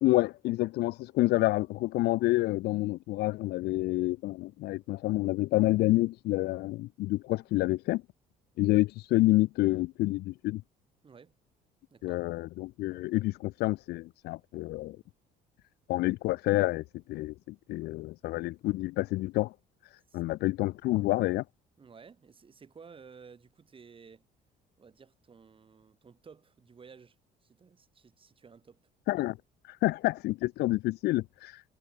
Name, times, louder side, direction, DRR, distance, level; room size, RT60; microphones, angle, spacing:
voice 1, 0.0-8.0 8.6-10.6 12.0-15.0 15.9-19.5 20.1-21.4 29.1-29.4 29.7-31.6, left 18 dB, 75° left, 0.4 m, -28 dB
voice 2, 11.0-11.3 11.9-12.2 20.1-20.2 21.8-24.2 24.8-27.2 27.4-28.8, right 5 dB, 30° right, 5.1 m, -54 dB
cardioid pair, 110°, 17 cm